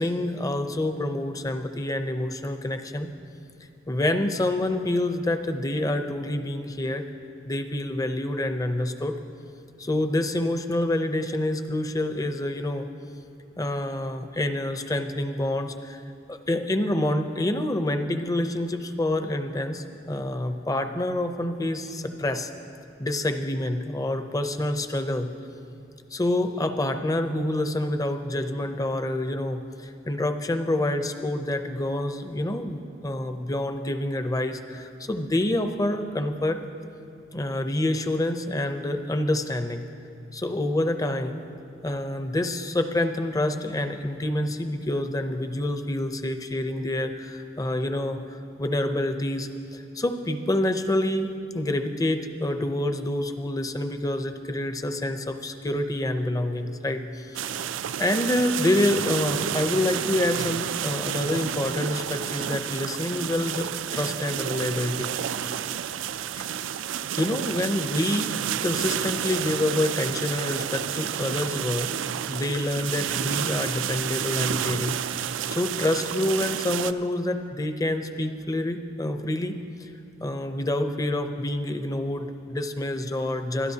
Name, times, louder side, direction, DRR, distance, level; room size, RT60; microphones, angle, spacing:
voice 1, 0.0-3.1 3.9-7.1 7.5-9.2 9.8-12.9 13.6-16.0 16.3-22.5 23.0-25.3 26.1-36.6 37.3-39.8 40.3-41.4 41.8-57.6 58.0-65.1 66.4-66.6 67.2-68.4 68.6-71.9 72.3-79.6 80.2-83.7, left 1 dB, 20° left, 8 dB, 0.6 m, -27 dB
sound 1, 57.3-76.9, right 9 dB, 90° right, 0.4 m, -30 dB
22.0 x 12.5 x 2.8 m, 2.7 s
head